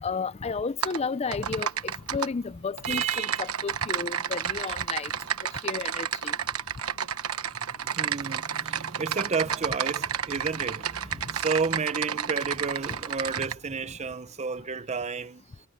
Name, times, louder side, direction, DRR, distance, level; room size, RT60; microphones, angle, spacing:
voice 1, 0.0-5.1 5.6-6.3, left 4 dB, 30° left, 0.4 m, -32 dB
Typing, 0.8-1.0 1.3-2.3 2.8-13.5, right 8 dB, 80° right, 1.1 m, -31 dB
voice 2, 2.8-3.5 7.7-15.4, right 5 dB, 30° right, 0.6 m, -31 dB
head